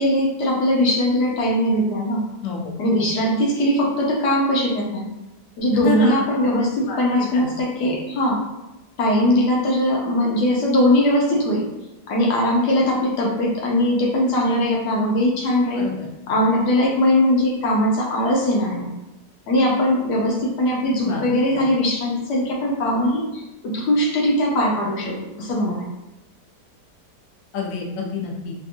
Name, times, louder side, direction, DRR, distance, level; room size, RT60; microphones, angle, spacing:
voice 1, 0.0-2.2 2.8-5.1 5.6-8.4 9.0-11.7 12.1-15.9 16.3-18.9 19.5-25.9, left 1 dB, 85° left, -2 dB, 1.3 m, -20 dB
voice 2, 5.8-6.2 6.9-7.5 15.7-16.0 21.0-21.2 27.5-28.5, left 5 dB, 65° left, -2 dB, 0.9 m, -27 dB
3.4 x 2.5 x 2.7 m, 0.98 s
omnidirectional pair, 1.7 m